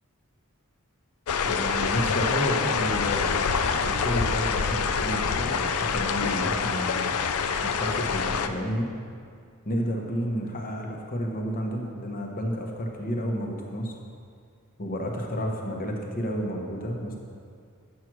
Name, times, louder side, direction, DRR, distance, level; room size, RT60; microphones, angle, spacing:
sound 1, 1.3-8.5, left 5 dB, 70° left, 0.5 m, -26 dB
voice 1, 1.4-7.1 7.6-8.9 9.6-13.9 14.8-17.2, equal, 40° left, 1 dB, 1.1 m, -31 dB
8.4 x 6.1 x 6.2 m, 2.3 s
head